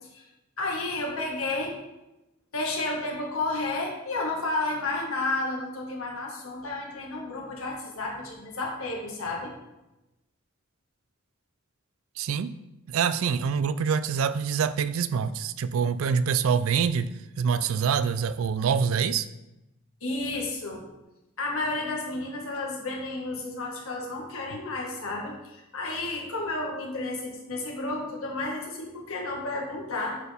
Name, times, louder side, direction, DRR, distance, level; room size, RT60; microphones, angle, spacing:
voice 1, 0.6-1.8 2.5-9.5 20.0-20.8 21.4-30.2, left 2 dB, 90° left, -1 dB, 1.6 m, -31 dB
voice 2, 12.2-12.5 12.9-19.3, right 6 dB, 75° right, 14 dB, 0.3 m, -25 dB
8.6 x 4.5 x 3.4 m, 0.96 s
head